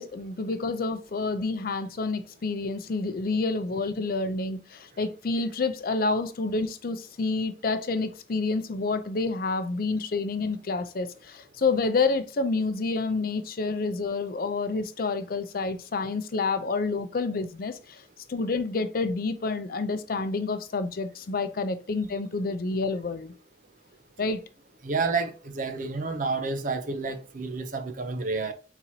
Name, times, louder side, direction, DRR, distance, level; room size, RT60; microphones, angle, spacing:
voice 1, 0.0-17.8 18.3-23.3 24.2-24.4, left 3 dB, 55° left, 0.5 m, -28 dB
voice 2, 24.8-28.5, right 4 dB, 45° right, 0.7 m, -30 dB
4.4 x 3.9 x 2.8 m
head